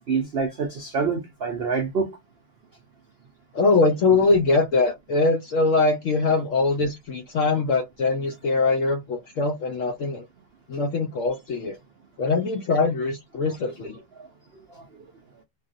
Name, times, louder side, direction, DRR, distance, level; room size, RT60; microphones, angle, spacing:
voice 1, 0.0-2.1, right 5 dB, 75° right, 0.5 m, -26 dB
voice 2, 3.5-10.3 10.7-11.8 12.2-14.0, left 3 dB, 70° left, 0.7 m, -22 dB
3.3 x 2.4 x 2.5 m
omnidirectional pair, 1.9 m